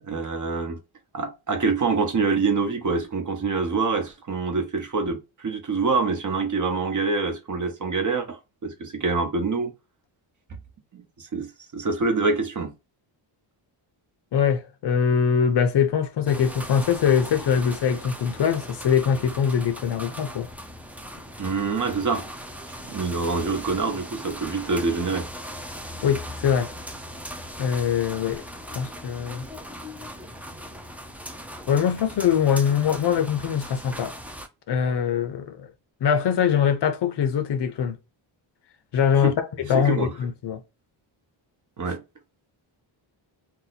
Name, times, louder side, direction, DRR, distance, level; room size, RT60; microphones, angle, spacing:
voice 1, 0.0-0.8 1.1-9.7 10.9-12.7 21.4-22.3 22.8-25.3 39.2-39.4 39.7-40.1 41.8-42.0, right 4 dB, 40° right, 0.9 m, -26 dB
voice 2, 14.3-20.5 26.0-26.7 27.6-28.4 28.7-29.5 31.7-34.1 34.7-35.7 36.0-38.0 38.9-40.6, left 7 dB, 55° left, 0.7 m, -23 dB
sound 1, 16.3-34.5, equal, 5° right, 0.4 m, -39 dB
2.7 x 2.1 x 4.0 m
cardioid pair, 95°, 49 cm